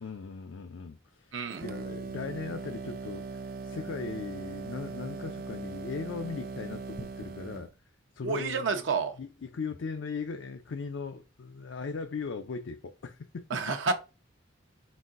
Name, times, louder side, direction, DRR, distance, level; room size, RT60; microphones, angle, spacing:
voice 1, 0.0-1.4 1.6-7.7 8.1-8.8 9.2-13.6, left 5 dB, 75° left, 0.4 m, -38 dB
voice 2, 1.3-1.6 8.2-9.1 13.5-13.9, right 4 dB, 75° right, 0.7 m, -29 dB
sound 1, 1.5-7.7, right 4 dB, 45° right, 0.3 m, -40 dB
4.6 x 4.1 x 2.5 m
head